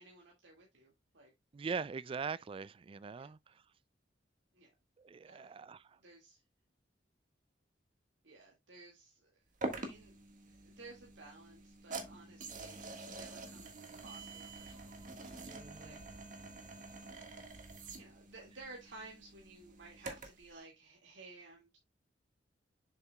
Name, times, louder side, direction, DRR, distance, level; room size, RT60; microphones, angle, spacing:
voice 1, 0.0-1.3 3.2-3.3 4.5-4.7 5.3-5.6 6.0-6.4 8.2-10.2 10.5-16.3 18.0-21.8, right 3 dB, 85° right, 2.0 m, -56 dB
voice 2, 1.5-3.6 5.0-6.0 15.4-16.0, right 5 dB, 30° right, 0.3 m, -42 dB
sound 1, 9.6-20.5, right 2 dB, 45° right, 1.6 m, -46 dB
7.3 x 6.6 x 2.2 m
head